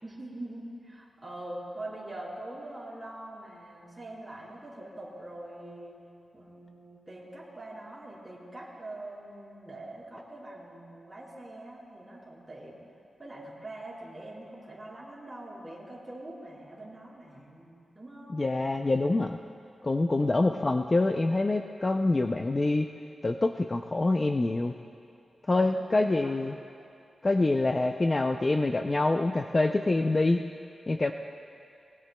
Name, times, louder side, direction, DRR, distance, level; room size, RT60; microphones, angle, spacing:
voice 1, 0.0-6.0 6.3-12.8 13.2-18.4 20.2-20.7 25.6-26.1, right 1 dB, 15° right, -7 dB, 4.2 m, -43 dB
voice 2, 18.3-19.4 19.8-22.9 23.2-24.8 25.5-26.6 27.2-30.4 30.9-31.1, left 2 dB, 25° left, 5 dB, 0.4 m, -26 dB
23.5 x 21.5 x 2.2 m, 2.5 s
wide cardioid pair, 145°, 0 cm